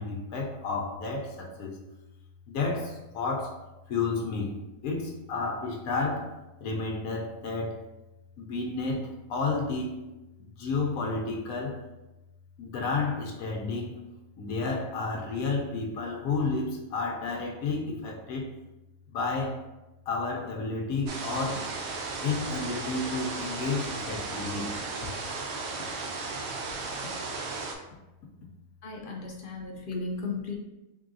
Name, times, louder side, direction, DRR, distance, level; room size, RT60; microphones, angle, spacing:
voice 1, 0.0-1.8 2.5-3.6 3.9-7.8 8.4-10.0 10.6-11.9 12.6-14.0 14.4-18.5 19.1-19.7 20.1-21.7 22.2-24.8 29.1-29.9, left 3 dB, 80° left, 0 dB, 1.1 m, -31 dB
sound 1, 21.1-27.7, right 3 dB, 65° right, 0.7 m, -35 dB
voice 2, 28.8-30.6, left 3 dB, 55° left, -1 dB, 0.6 m, -35 dB
3.7 x 3.3 x 2.6 m, 1.0 s
omnidirectional pair, 1.5 m